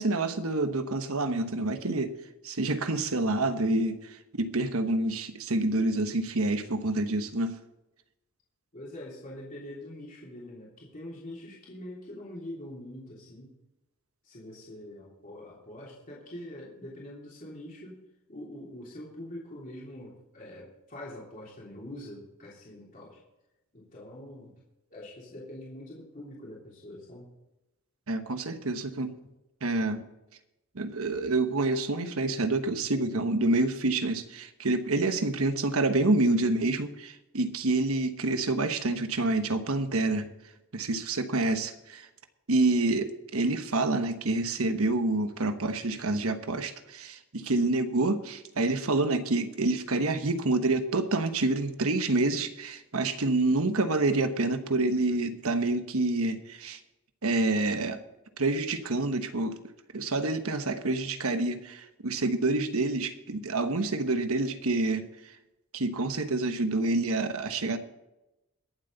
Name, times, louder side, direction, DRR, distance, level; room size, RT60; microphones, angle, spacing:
voice 1, 0.0-2.1 2.4-7.6 28.1-29.1 29.6-30.1 30.7-40.3 40.7-42.1 42.5-56.8 57.2-58.0 58.4-59.6 59.9-65.1 65.7-67.8, right 2 dB, 85° right, 9 dB, 1.2 m, -27 dB
voice 2, 8.7-13.5 14.2-18.0 18.3-23.2 23.7-24.5 24.9-27.3, left 1 dB, 40° left, -6 dB, 3.3 m, -44 dB
22.5 x 7.9 x 4.0 m, 0.95 s
head